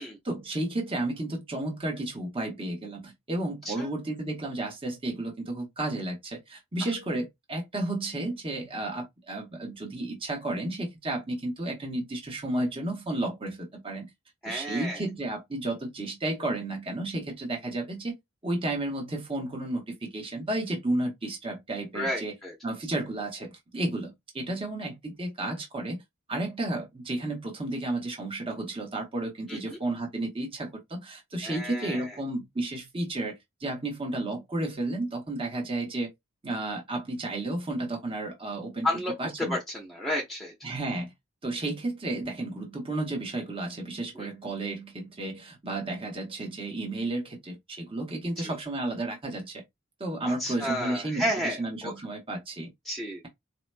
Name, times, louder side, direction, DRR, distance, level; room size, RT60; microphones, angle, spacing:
voice 1, 0.0-14.1 14.5-18.1 18.4-22.3 22.6-26.0 26.3-36.1 36.4-38.9 39.2-39.6 40.6-41.1 41.4-49.6 50.0-52.7, right 2 dB, 25° right, 1.0 m, -32 dB
voice 2, 14.4-15.0 21.9-22.5 29.5-29.8 31.4-32.1 38.8-39.1 39.4-40.5 44.2-44.3 48.4-48.5 50.2-51.9 52.8-53.2, left 1 dB, ahead, 0.8 m, -32 dB
4.1 x 2.9 x 2.2 m
head